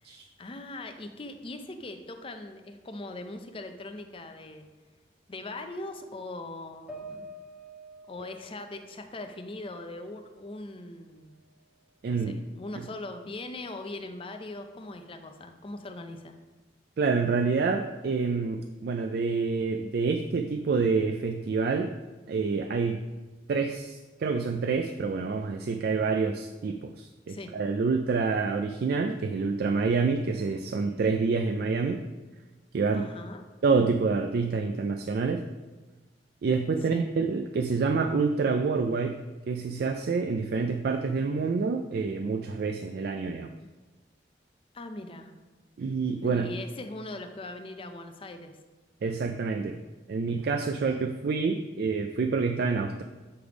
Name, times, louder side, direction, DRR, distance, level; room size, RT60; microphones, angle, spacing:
voice 1, 0.0-4.7 5.3-7.3 8.1-11.3 12.1-16.4 27.3-27.5 32.9-33.4 36.9-37.1 44.7-45.3 46.2-48.5, left 2 dB, 30° left, 6 dB, 0.5 m, -40 dB
sound 1, 6.9-10.3 10.7-11.7, right 1 dB, 5° right, 0.8 m, -49 dB
voice 2, 12.0-12.4 12.8-12.9 17.0-21.9 22.3-23.0 23.5-32.0 32.7-33.1 33.6-35.4 36.4-39.2 39.5-43.5 45.8-46.5 49.0-49.8 50.1-53.0, right 4 dB, 60° right, 6 dB, 0.3 m, -27 dB
8.0 x 3.4 x 4.9 m, 1.2 s
head